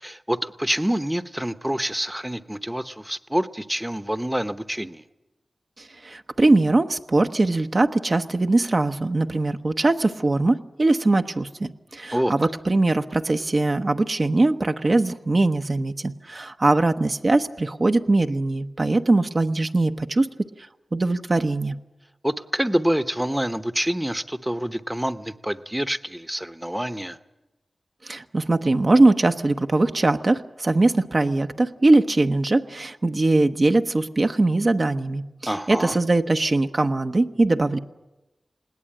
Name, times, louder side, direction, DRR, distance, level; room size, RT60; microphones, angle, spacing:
voice 1, 0.0-5.0 12.1-12.3 22.2-27.2 35.5-36.0, equal, 10° right, 12 dB, 0.9 m, -27 dB
voice 2, 5.8-20.3 20.9-21.8 28.0-37.8, right 2 dB, 45° right, 7 dB, 0.9 m, -21 dB
20.5 x 17.5 x 8.8 m, 1.0 s
wide cardioid pair, 60°, 0 cm